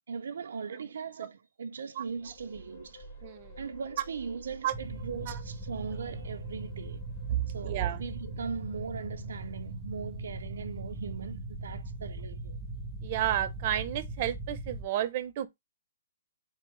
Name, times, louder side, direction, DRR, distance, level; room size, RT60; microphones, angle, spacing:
voice 1, 0.1-3.1 3.6-7.0 7.5-12.6, right 5 dB, 75° right, 0.4 m, -39 dB
sound 1, 2.0-9.9, equal, 35° left, 1.4 m, -51 dB
voice 2, 3.2-3.6 4.6-4.7 5.3-5.4 7.3-8.0 13.0-15.5, right 12 dB, 35° right, 0.6 m, -31 dB
sound 2, 4.7-14.8, right 2 dB, 5° right, 0.8 m, -40 dB
4.3 x 3.5 x 3.1 m
hypercardioid pair, 160°, 0 cm